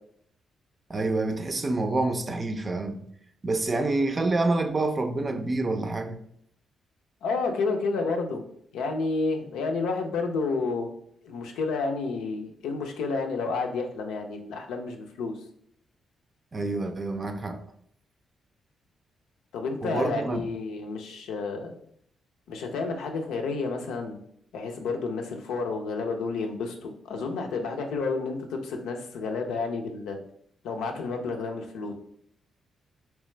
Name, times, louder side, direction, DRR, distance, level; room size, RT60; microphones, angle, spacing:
voice 1, 0.9-3.0 3.4-6.2 16.5-17.6 19.8-20.4, right 2 dB, 40° right, 0.5 m, -27 dB
voice 2, 7.2-8.4 8.7-10.9 11.2-15.3 19.5-21.8 22.5-24.2 24.5-30.2 30.6-31.9, left 4 dB, 75° left, 0.5 m, -30 dB
3.3 x 3.0 x 3.2 m
hypercardioid pair, 45°, 0 cm